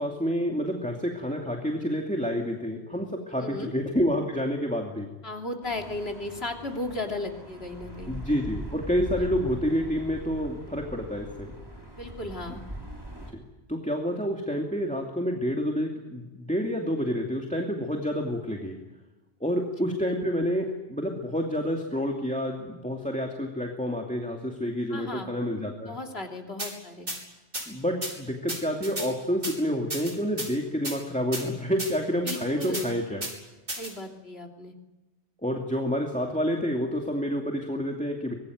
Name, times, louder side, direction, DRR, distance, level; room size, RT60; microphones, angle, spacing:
voice 1, 0.0-5.1 8.1-11.5 13.7-18.8 19.4-25.9 27.7-33.2 35.4-38.3, equal, 5° left, 1 dB, 2.6 m, -28 dB
voice 2, 3.4-3.7 5.2-8.1 9.1-9.3 12.0-12.6 24.9-25.3 25.8-27.1 32.2-32.9 33.8-34.7, left 2 dB, 65° left, 2 dB, 3.3 m, -35 dB
sound 1, 5.6-13.3, right 1 dB, 20° right, 4.3 m, -41 dB
sound 2, 26.6-26.7 27.1-27.2 27.5-27.6 28.0-28.1 28.5-29.1 29.4-29.5 29.9-30.5 30.8-31.0 31.3-31.4 31.8-31.9 32.3-32.8 33.2-33.3 33.7-33.9, right 1 dB, 55° right, 5.5 m, -33 dB
24.5 x 21.0 x 9.5 m, 1.1 s
omnidirectional pair, 1.1 m